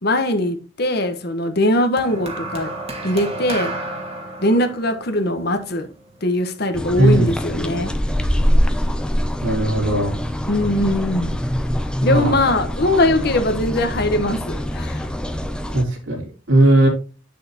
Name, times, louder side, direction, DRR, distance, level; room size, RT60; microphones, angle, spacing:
voice 1, 0.0-2.7 3.0-3.7 4.4-5.9 6.2-7.9 10.4-11.3 12.0-15.0, left 1 dB, 55° left, 1.2 m, -21 dB
sound 1, 2.0-6.4 7.3-7.6, right 2 dB, 30° right, 1.5 m, -31 dB
sound 2, 6.7-15.8, equal, 5° left, 0.6 m, -24 dB
voice 2, 7.0-7.3 9.4-10.1 12.0-12.3 15.7-16.9, right 2 dB, 80° right, 3.5 m, -17 dB
9.0 x 6.6 x 2.9 m
head